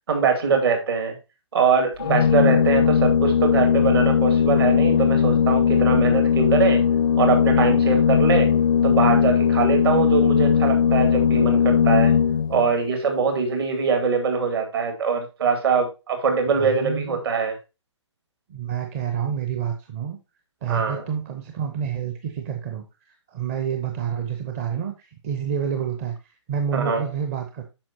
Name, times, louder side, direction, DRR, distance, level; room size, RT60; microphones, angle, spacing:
voice 1, 0.1-1.2 1.5-6.8 7.2-8.5 8.8-12.1 12.5-17.6 20.7-21.0 26.7-27.1, right 5 dB, 55° right, 5 dB, 2.3 m, -22 dB
Organ, 2.0-12.7, left 7 dB, 40° left, 0.4 m, -19 dB
voice 2, 16.6-17.2 18.5-20.2 20.6-27.6, right 8 dB, 30° right, 5 dB, 0.8 m, -29 dB
8.7 x 6.1 x 2.9 m, 0.27 s
figure-of-eight pair, 130°, 16 cm